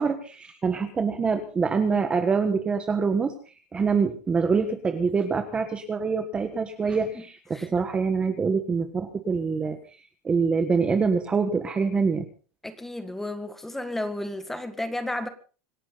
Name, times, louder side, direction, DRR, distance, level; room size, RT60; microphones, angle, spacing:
voice 1, 0.0-3.3 3.7-9.8 10.2-12.3, right 5 dB, 15° right, 1.4 m, -25 dB
voice 2, 6.8-7.2 7.5-7.7 12.6-15.3, left 1 dB, 5° left, 1.8 m, -33 dB
26.0 x 12.0 x 4.0 m
supercardioid pair, 165°, 7 cm